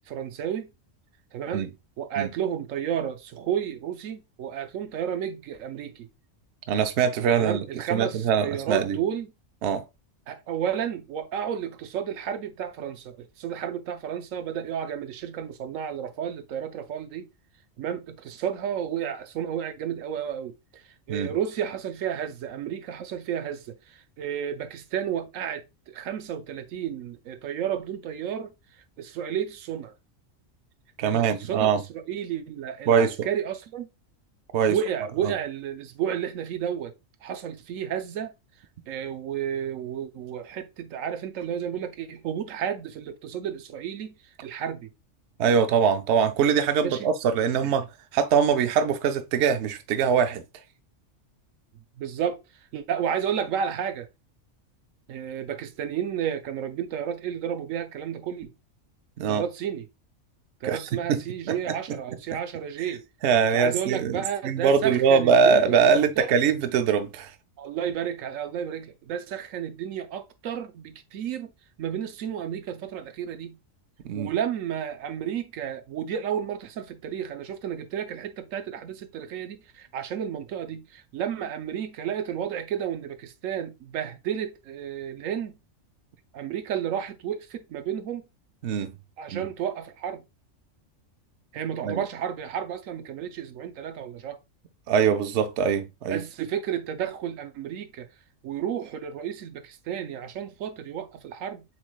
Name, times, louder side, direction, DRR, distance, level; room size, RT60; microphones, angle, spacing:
voice 1, 0.1-0.7 1.3-1.7 2.0-6.1 7.4-9.3 10.3-17.3 17.8-28.5 29.0-29.9 31.0-33.9 34.7-36.9 37.2-38.3 38.9-44.2 44.4-44.9 46.8-47.1 47.6-47.8 52.0-54.1 55.1-58.5 59.3-59.9 60.6-63.1 63.5-66.4 67.6-71.5 71.8-73.6 74.1-85.6 86.3-88.2 89.2-90.2 91.5-94.4 96.1-98.1 98.4-101.6, right 9 dB, 85° right, 1.1 m, -32 dB
voice 2, 6.7-7.7 7.9-9.0 9.6-9.8 21.1-21.3 31.0-31.8 32.9-33.1 34.5-34.8 45.4-47.9 48.1-50.4 59.2-59.4 60.6-61.2 61.7-61.8 63.2-67.3 74.0-74.3 88.6-88.9 89.3-89.4 91.8-92.0 94.9-96.2, right 6 dB, 65° right, 0.8 m, -22 dB
7.2 x 3.1 x 2.2 m
omnidirectional pair, 1.3 m